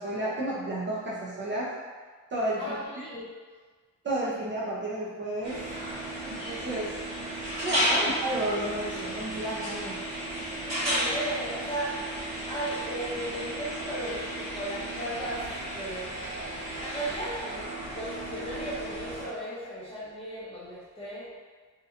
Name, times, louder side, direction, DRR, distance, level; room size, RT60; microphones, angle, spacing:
voice 1, 0.0-1.7 2.3-3.1 4.0-5.6 6.3-6.9 7.6-10.0, right 1 dB, 35° right, -6 dB, 0.5 m, -31 dB
voice 2, 2.6-3.2 7.9-8.2 10.6-12.0 12.4-15.5 15.7-16.1 16.8-17.6 17.9-21.3, right 1 dB, 20° left, -9 dB, 0.8 m, -36 dB
sound 1, 5.4-19.2, right 1 dB, 55° right, 1.2 m, -33 dB
2.8 x 2.2 x 3.6 m, 1.5 s
wide cardioid pair, 170°, 32 cm